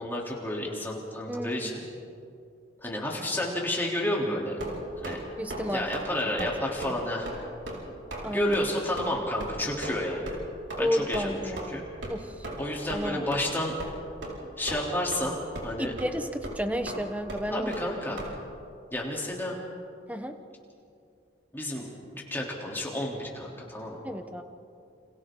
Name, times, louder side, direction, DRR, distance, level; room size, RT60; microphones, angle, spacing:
voice 1, 0.0-1.8 2.8-4.6 5.0-5.2 5.7-7.3 8.2-10.4 10.8-11.8 12.6-13.7 14.6-15.9 17.5-18.2 18.9-19.6 21.5-24.0, left 1 dB, 10° left, -3 dB, 3.4 m, -31 dB
voice 2, 1.3-1.7 5.4-5.9 6.4-6.5 8.2-8.6 10.8-11.8 12.1-12.5 12.9-13.3 15.8-17.7 20.1-20.4 24.0-24.4, equal, 10° right, 6 dB, 1.1 m, -31 dB
sound 1, 4.6-5.2 5.5-5.7 5.9-6.1 6.4-6.5 6.8-7.0 7.3-7.4 7.7-7.8 8.1-8.3 8.5-8.6 9.0-9.1 9.4-9.5 9.8-10.0 10.3-10.4 10.7-10.8 11.1-11.2 11.6-11.7 12.0-12.2 12.4-12.6 12.9-13.0 13.3-13.4 13.8-13.9 14.2-14.4 14.7-15.2 15.5-15.7 16.0-16.1 16.4-16.6 16.9-17.0 17.3-17.4 17.7-17.9 18.2-18.3, right 1 dB, 80° right, 5.1 m, -36 dB
29.5 x 27.0 x 3.9 m, 2.5 s
head